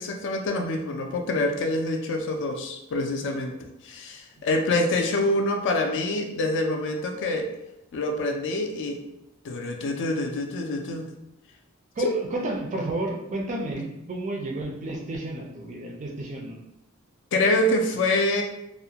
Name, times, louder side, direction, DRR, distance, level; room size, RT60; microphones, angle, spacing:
voice 1, 0.0-3.6 3.8-7.5 7.9-9.0 9.4-11.1 12.0-12.1 13.8-13.9 17.3-18.4, left 2 dB, 55° left, 3 dB, 0.3 m, -26 dB
voice 2, 12.0-13.8 14.1-16.6, right 1 dB, 35° right, 1 dB, 0.3 m, -31 dB
2.3 x 2.1 x 2.7 m, 0.85 s
head